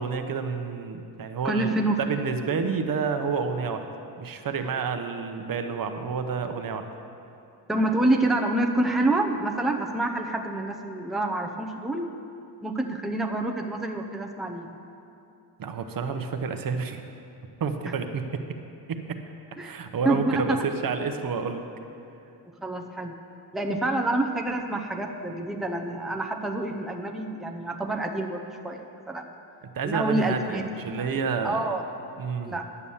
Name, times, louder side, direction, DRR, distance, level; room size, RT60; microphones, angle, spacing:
voice 1, 0.0-1.7 2.0-3.9 4.2-6.9 15.6-17.0 17.6-18.4 18.9-19.2 19.6-21.6 29.7-31.6 32.2-32.6, right 5 dB, 55° right, 6 dB, 0.8 m, -29 dB
voice 2, 1.4-2.0 7.7-12.1 12.6-14.7 19.6-19.7 20.0-20.6 22.6-23.1 23.5-29.3 29.8-30.6 31.0-31.1 31.4-31.8 32.4-32.7, right 2 dB, ahead, 2 dB, 0.6 m, -27 dB
11.0 x 7.0 x 7.1 m, 2.7 s
cardioid pair, 115°, 42 cm